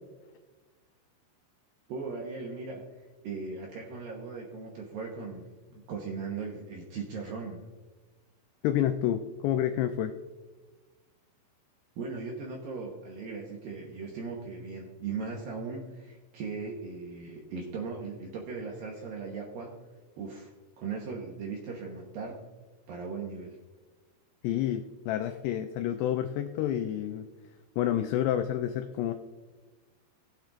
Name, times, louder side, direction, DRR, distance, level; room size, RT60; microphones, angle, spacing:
voice 1, 1.9-2.8 3.2-7.6 12.0-19.8 20.2-22.4 22.9-23.6, right 4 dB, 75° right, -1 dB, 2.2 m, -38 dB
voice 2, 8.6-10.1 24.4-27.3 27.8-29.1, left 11 dB, 90° left, 6 dB, 2.4 m, -29 dB
19.5 x 8.8 x 2.5 m, 1.3 s
omnidirectional pair, 5.5 m